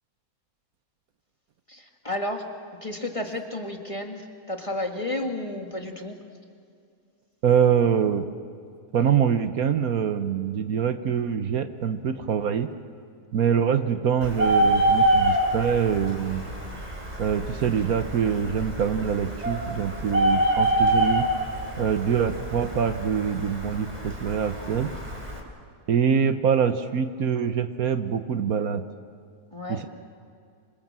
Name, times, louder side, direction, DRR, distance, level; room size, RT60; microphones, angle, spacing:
voice 1, 1.7-2.4 2.8-6.2 29.5-29.9, left 1 dB, 20° left, 3 dB, 1.9 m, -32 dB
voice 2, 7.4-8.2 8.9-12.7 13.3-16.4 17.2-21.3 21.8-24.9 25.9-28.8 29.7-29.9, right 7 dB, 65° right, 9 dB, 1.4 m, -24 dB
Bird, 14.2-25.4, right 1 dB, 25° right, 3.6 m, -26 dB
26.0 x 25.5 x 7.6 m, 2.3 s
omnidirectional pair, 1.7 m